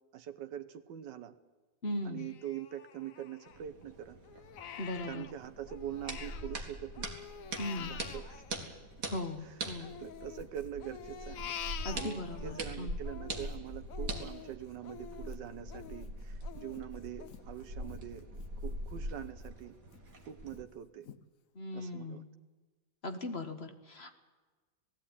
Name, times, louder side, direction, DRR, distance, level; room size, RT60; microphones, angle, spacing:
voice 1, 0.1-1.3 2.0-4.2 5.0-7.1 7.7-8.4 9.4-11.6 11.9-18.3 18.6-19.7 20.3-21.1 21.7-22.2, right 10 dB, 90° right, 9 dB, 1.6 m, -44 dB
voice 2, 1.8-2.3 4.8-5.2 7.6-8.0 9.1-9.9 11.8-13.0 21.5-22.3 23.0-24.1, left 1 dB, 40° left, 7 dB, 1.7 m, -38 dB
Crying sobbing, 2.2-3.8 4.2-6.6 6.9-9.4 9.8-12.6 13.0-18.5 18.9-19.0 19.4-20.0 20.5-20.6 21.1-21.2, left 9 dB, 55° left, 1.1 m, -47 dB
sound 1, 3.5-20.6, right 1 dB, 55° right, 2.6 m, -43 dB
19.0 x 15.0 x 9.8 m, 1.3 s
omnidirectional pair, 1.8 m